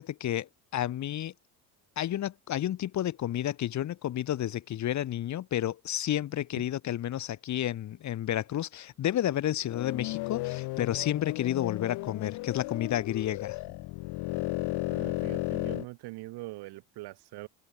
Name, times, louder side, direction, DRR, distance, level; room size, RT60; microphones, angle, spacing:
voice 1, 0.0-1.3 2.0-13.6, left 12 dB, 45° left, 1.2 m, -31 dB
sound 1, 9.6-15.9, left 22 dB, 70° left, 0.9 m, -34 dB
voice 2, 14.9-17.5, right 20 dB, 70° right, 2.7 m, -42 dB
cardioid pair, 110°, 40 cm